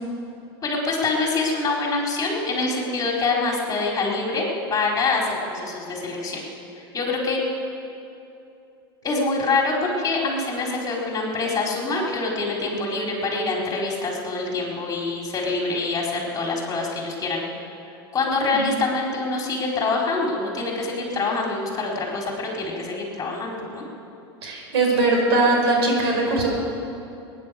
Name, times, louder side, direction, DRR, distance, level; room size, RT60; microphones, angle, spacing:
voice 1, 0.6-4.4 4.7-6.4 6.9-7.4 9.0-17.4 18.1-23.8, left 3 dB, 25° left, -2 dB, 4.3 m, -25 dB
voice 2, 24.4-26.5, right 2 dB, 70° right, 0 dB, 4.8 m, -20 dB
20.0 x 10.5 x 6.9 m, 2.7 s
hypercardioid pair, 100°, 14 cm